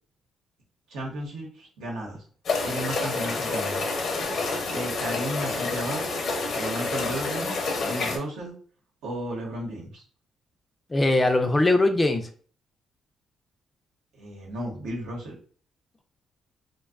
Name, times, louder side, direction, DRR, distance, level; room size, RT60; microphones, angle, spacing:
voice 1, 0.9-2.2 2.6-3.8 4.7-6.0 6.5-7.5 7.8-8.5 9.0-10.0 14.1-15.3, right 1 dB, 80° right, -1 dB, 0.9 m, -34 dB
sound 1, 2.5-8.2, left 3 dB, 60° left, 0.6 m, -28 dB
voice 2, 10.9-12.3, left 2 dB, 20° left, 6 dB, 0.3 m, -21 dB
2.5 x 2.2 x 2.3 m, 0.43 s
cardioid pair, 90°, 0 cm